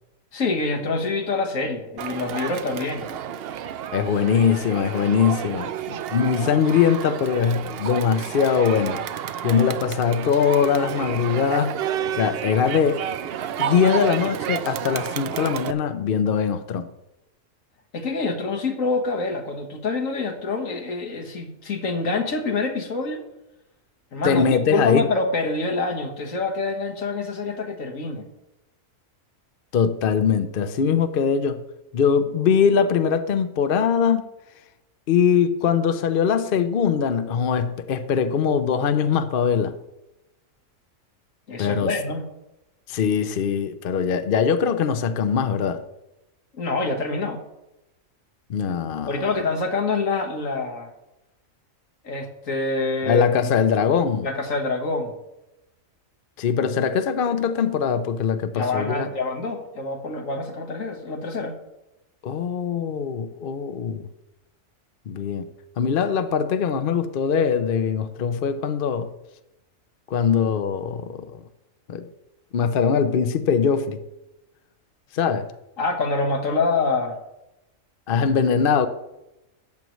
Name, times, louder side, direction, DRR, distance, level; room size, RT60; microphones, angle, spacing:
voice 1, 0.3-3.1 17.9-23.2 24.1-28.3 41.5-42.3 46.5-47.4 49.1-50.9 52.0-53.5 54.2-55.1 58.5-61.6 75.8-77.2, left 3 dB, 75° left, 1.9 m, -26 dB
Crowd, 2.0-15.7, right 9 dB, 60° right, 0.6 m, -30 dB
voice 2, 3.9-9.0 9.4-13.0 13.6-16.9 24.2-25.1 29.7-31.6 31.9-34.3 35.1-39.7 41.6-41.9 42.9-45.8 48.5-49.3 53.0-54.3 56.4-59.1 62.2-64.1 65.1-65.4 65.8-69.1 70.1-71.3 71.9-72.1 72.5-74.0 75.1-75.5 78.1-78.9, left 6 dB, 55° left, 0.7 m, -22 dB
14.0 x 9.3 x 3.1 m
omnidirectional pair, 1.4 m